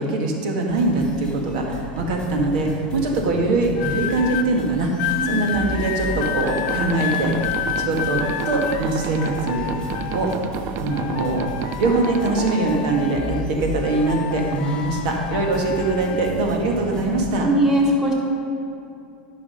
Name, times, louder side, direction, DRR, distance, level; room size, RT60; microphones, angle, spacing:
voice 1, 0.0-7.3 7.8-9.7 10.1-10.3 10.8-11.5 11.8-17.5, right 2 dB, 65° right, 1 dB, 1.7 m, -22 dB
sound 1, 0.7-17.4, left 1 dB, 15° left, 1.6 m, -35 dB
sound 2, 3.7-4.5 5.0-10.5 10.9-13.5 13.8-16.3 17.1-17.4, left 10 dB, 60° left, 0.5 m, -30 dB
sound 3, 6.1-12.6, right 11 dB, 45° right, 0.4 m, -32 dB
voice 2, 17.4-18.1, equal, 10° right, -4 dB, 2.4 m, -19 dB
9.7 x 5.7 x 5.4 m, 2.7 s
hypercardioid pair, 100°, 5 cm